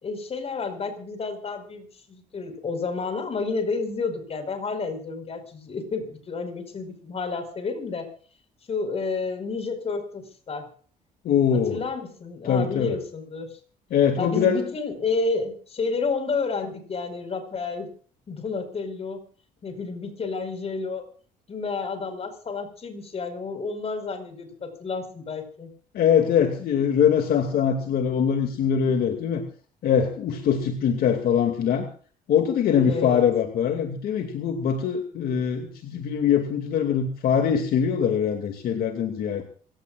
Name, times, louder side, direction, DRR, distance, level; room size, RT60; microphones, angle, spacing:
voice 1, 0.0-8.1 8.7-10.7 11.7-13.5 14.2-17.9 18.3-19.2 19.6-21.0 21.5-25.7 32.8-33.2, left 4 dB, 35° left, 8 dB, 5.1 m, -30 dB
voice 2, 11.2-11.8 12.4-13.0 13.9-14.6 25.9-29.4 29.8-31.9 32.3-39.4, left 8 dB, 60° left, 6 dB, 2.6 m, -22 dB
27.0 x 16.5 x 2.5 m, 0.43 s
cardioid pair, 110°, 17 cm